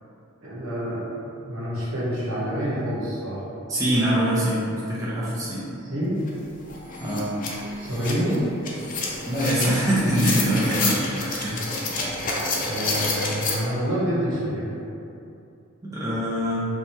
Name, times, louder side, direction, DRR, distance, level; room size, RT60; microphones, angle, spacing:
voice 1, 0.4-1.0 1.5-3.4 5.5-6.2 7.8-8.4 12.7-14.8, equal, 75° right, -8 dB, 1.1 m, -28 dB
voice 2, 3.7-5.6 7.0-7.4 9.3-11.6 15.8-16.7, right 1 dB, 15° right, -9 dB, 0.6 m, -24 dB
sound 1, 6.3-6.4 6.7-13.6, left 3 dB, 40° left, 0.5 m, -28 dB
3.2 x 2.2 x 4.2 m, 2.7 s
head